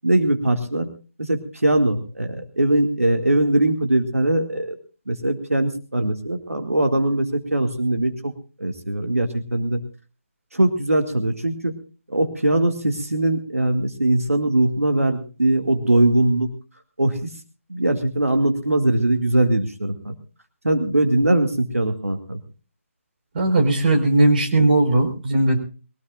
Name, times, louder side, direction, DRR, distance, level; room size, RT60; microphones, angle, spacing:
voice 1, 0.0-0.9 1.2-4.8 5.1-8.3 8.6-9.8 10.5-11.7 12.1-16.5 17.0-17.3 17.7-20.1 20.6-22.4, right 1 dB, 90° right, 5 dB, 2.2 m, -21 dB
voice 2, 23.3-25.6, right 2 dB, 40° right, 4 dB, 4.6 m, -18 dB
23.0 x 18.0 x 2.5 m, 0.37 s
figure-of-eight pair, 150°, 8 cm